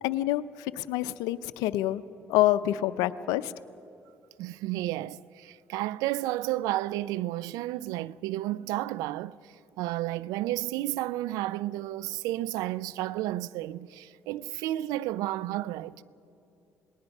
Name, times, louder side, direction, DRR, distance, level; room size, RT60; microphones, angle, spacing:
voice 1, 0.0-2.0 2.3-3.5, left 14 dB, 85° left, 0.6 m, -27 dB
voice 2, 4.4-9.4 9.8-16.0, right 15 dB, 85° right, 0.4 m, -32 dB
28.0 x 19.5 x 5.4 m
supercardioid pair, 60°, 6 cm